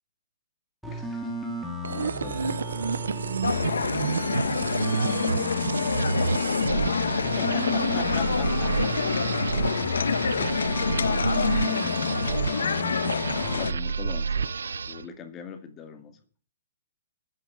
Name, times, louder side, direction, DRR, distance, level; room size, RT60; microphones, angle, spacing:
sound 1, 0.8-13.6, equal, ahead, 2.7 m, -35 dB
voice 1, 0.9-1.3 1.9-2.6 7.1-8.9 13.6-16.2, left 7 dB, 15° left, 6 dB, 2.1 m, -41 dB
sound 2, 1.8-15.1, right 5 dB, 90° right, 0.7 m, -30 dB
sound 3, 3.4-13.7, left 6 dB, 85° left, 1.2 m, -27 dB
voice 2, 3.5-6.2 7.0-7.1 8.9-9.0 9.4-9.8 10.3-12.5, right 6 dB, 40° right, 4 dB, 6.4 m, -51 dB
13.0 x 8.7 x 9.7 m, 0.42 s
hypercardioid pair, 160°, 0 cm